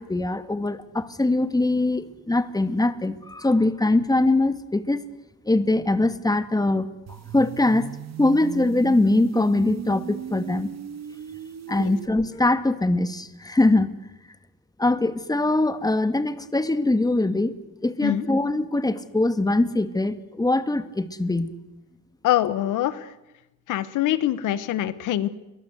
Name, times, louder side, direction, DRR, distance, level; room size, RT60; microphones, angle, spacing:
voice 1, 0.0-5.0 5.5-6.9 7.3-7.9 8.2-10.7 11.7-13.9 14.8-21.5, left 2 dB, 10° left, 12 dB, 2.1 m, -22 dB
sound 1, 7.1-12.1, right 8 dB, 60° right, 1.8 m, -37 dB
voice 2, 22.2-23.1 23.7-25.3, left 12 dB, 85° left, 16 dB, 1.4 m, -24 dB
29.5 x 23.5 x 8.1 m, 0.98 s
cardioid pair, 90°, 30 cm